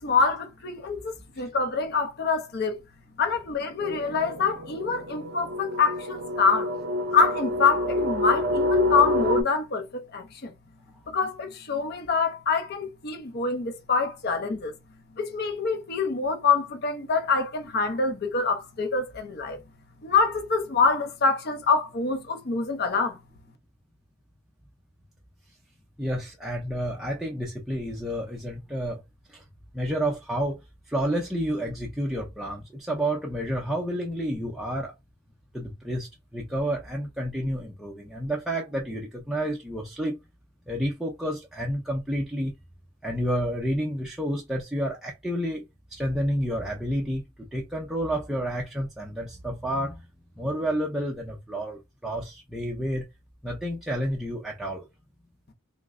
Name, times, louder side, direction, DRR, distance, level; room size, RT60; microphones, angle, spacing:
voice 1, 0.0-2.8 3.2-6.7 7.1-10.5 11.1-14.7 15.2-19.6 20.0-23.2, left 4 dB, 50° left, 0.5 m, -25 dB
sound 1, 3.8-9.4, left 1 dB, 55° right, 0.6 m, -27 dB
voice 2, 26.0-29.0 29.3-29.4 29.7-30.6 30.9-34.9 35.5-40.2 40.7-42.5 43.0-45.6 45.9-50.0 50.4-53.0 53.4-54.8, equal, ahead, 0.5 m, -30 dB
3.1 x 2.0 x 3.5 m
head